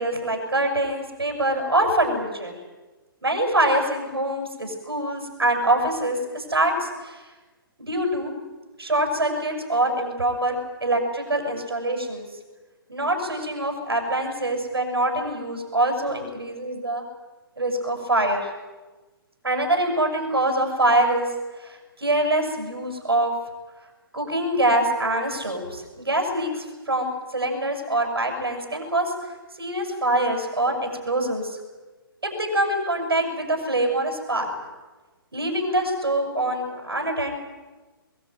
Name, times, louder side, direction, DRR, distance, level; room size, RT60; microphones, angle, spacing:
voice 1, 0.0-2.6 3.2-7.2 7.8-8.3 8.8-12.3 12.9-17.0 17.6-18.4 19.4-21.3 21.6-23.3 24.1-29.1 29.6-31.6 32.2-34.5 35.3-37.3, right 1 dB, 80° right, 3 dB, 7.7 m, -24 dB
24.5 x 20.5 x 9.5 m, 1.2 s
figure-of-eight pair, 125°, 13 cm